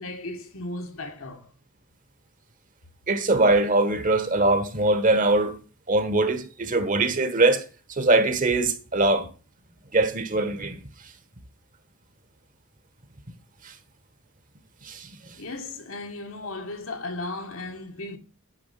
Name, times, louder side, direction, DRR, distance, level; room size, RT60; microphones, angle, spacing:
voice 1, 0.0-1.5 15.4-18.2, left 2 dB, 70° left, 1.8 m, -35 dB
voice 2, 3.1-5.6 5.9-7.6 7.9-9.3 9.9-10.8 13.6-13.7 14.8-15.1, right 2 dB, 40° right, 1.3 m, -22 dB
9.8 x 4.8 x 7.4 m
head